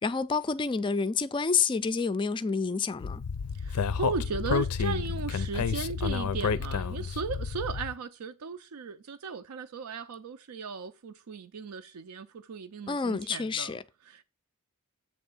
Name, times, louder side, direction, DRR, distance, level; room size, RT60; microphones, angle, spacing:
voice 1, 0.0-3.2 12.9-13.8, left 5 dB, 20° left, 0.3 m, -28 dB
Speech, 3.0-7.9, left 5 dB, 85° left, 0.5 m, -30 dB
voice 2, 3.5-13.7 14.0-14.2, right 5 dB, 75° right, 0.5 m, -36 dB
7.7 x 3.3 x 5.4 m
head